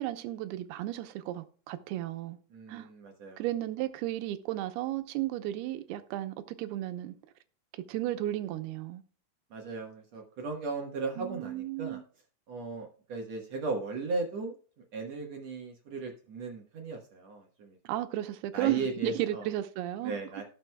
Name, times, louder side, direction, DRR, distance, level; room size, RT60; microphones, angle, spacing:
voice 1, 0.0-2.4 2.7-2.9 3.4-7.1 7.7-9.0 11.2-12.0 17.8-20.2, right 14 dB, 90° right, 2.8 m, -34 dB
voice 2, 2.5-3.4 9.5-12.0 12.5-14.6 14.9-17.8 18.5-19.5 20.0-20.4, right 3 dB, 60° right, 1.9 m, -36 dB
17.5 x 6.1 x 2.2 m
omnidirectional pair, 4.4 m